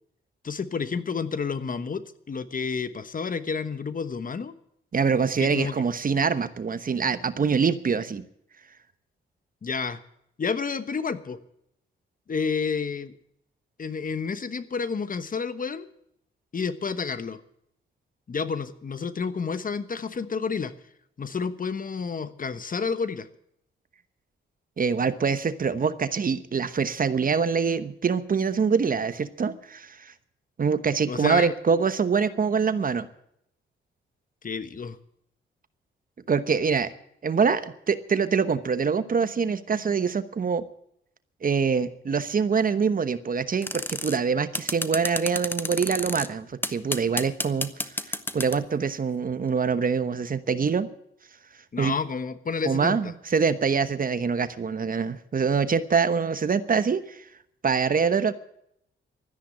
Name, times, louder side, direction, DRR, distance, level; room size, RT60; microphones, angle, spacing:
voice 1, 0.4-4.5 5.4-5.8 9.6-10.0 10.4-11.4 12.3-13.2 13.8-15.9 16.5-17.4 18.3-20.7 21.2-23.3 31.1-31.5 34.4-35.0 51.7-53.1, left 5 dB, 40° left, 13 dB, 1.2 m, -30 dB
voice 2, 4.9-8.3 24.8-30.1 30.6-33.1 36.3-36.9 37.2-40.7 41.4-47.7 48.1-50.9 51.8-51.9 52.6-57.2 57.6-58.3, right 5 dB, 45° right, 13 dB, 1.1 m, -24 dB
sound 1, 43.6-44.2 44.5-46.3 46.6-48.6, left 1 dB, 10° left, 1.1 m, -30 dB
13.0 x 10.0 x 8.7 m, 0.74 s
cardioid pair, 70°, 21 cm